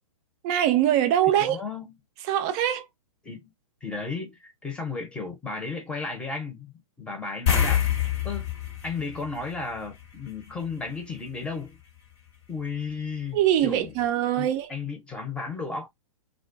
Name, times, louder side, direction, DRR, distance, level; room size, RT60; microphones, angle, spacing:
voice 1, 0.4-1.6 2.3-2.9 13.3-14.7, right 11 dB, 30° right, 0.4 m, -23 dB
voice 2, 1.4-1.9 3.2-3.5 3.8-6.7 7.0-7.9 8.2-8.5 8.8-11.8 12.5-13.9 14.4-15.9, left 4 dB, 5° left, 0.7 m, -34 dB
sound 1, 7.5-10.2 10.5-10.7 13.6-13.7 14.0-14.1, left 9 dB, 50° left, 0.9 m, -26 dB
2.3 x 2.2 x 2.5 m
hypercardioid pair, 135°, 18 cm